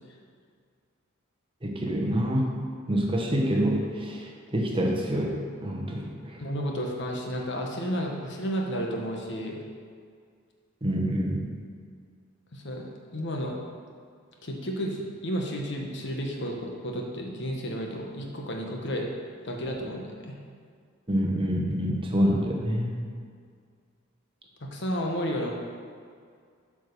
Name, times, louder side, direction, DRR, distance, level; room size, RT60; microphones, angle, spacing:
voice 1, 1.6-2.5 2.9-5.4 5.6-6.4 10.8-11.5 21.1-22.9, equal, 25° right, -1 dB, 1.1 m, -26 dB
voice 2, 6.4-9.6 12.5-13.6 14.4-19.1 19.4-20.3 24.6-25.5, equal, 55° left, 0 dB, 1.2 m, -32 dB
8.2 x 5.1 x 6.7 m, 2.1 s
head